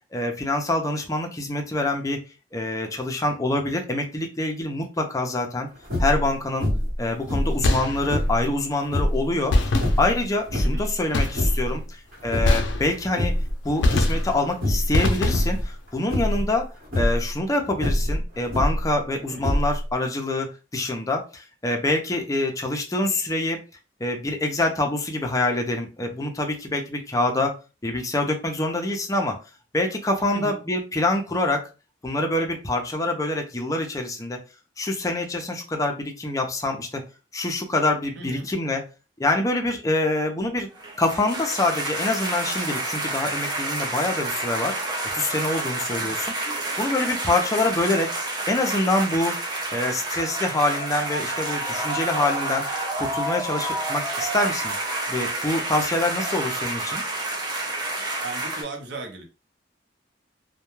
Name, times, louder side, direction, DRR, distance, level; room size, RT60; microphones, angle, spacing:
voice 1, 0.1-2.2 2.5-5.7 6.0-6.7 7.0-11.8 12.2-13.3 13.6-20.5 20.7-23.6 24.0-27.5 27.8-29.4 29.7-31.7 32.0-34.4 34.8-37.0 37.3-38.8 39.2-40.7 41.0-44.8 45.1-46.2 46.8-48.1 48.5-49.4 49.7-52.6 53.0-54.7 55.1-57.0, left 2 dB, 20° left, 3 dB, 0.5 m, -25 dB
sound 1, 5.8-6.3 6.6-7.0 7.3-8.4 8.8-9.2 9.8-10.9 11.2-11.7 12.1-12.9 13.2-13.5 13.8-14.3 14.6-15.0 15.3-15.6 16.1-16.5 16.8-17.2 17.8-18.9 19.4-19.9, left 1 dB, 50° right, 1.1 m, -24 dB
sound 2, 7.6-8.4 9.5-10.4 11.1-11.7 12.4-13.3 13.8-14.5 14.9-15.7, left 2 dB, 80° left, 0.4 m, -24 dB
voice 2, 10.6-10.9 11.7-11.8 19.3-19.5 30.3-30.6 38.2-38.5 46.0-46.2 58.2-59.2, right 2 dB, 70° right, 3 dB, 0.7 m, -37 dB
sound 3, 40.7-58.6, right 2 dB, 25° right, 0.6 m, -29 dB
2.2 x 2.2 x 3.0 m, 0.31 s
head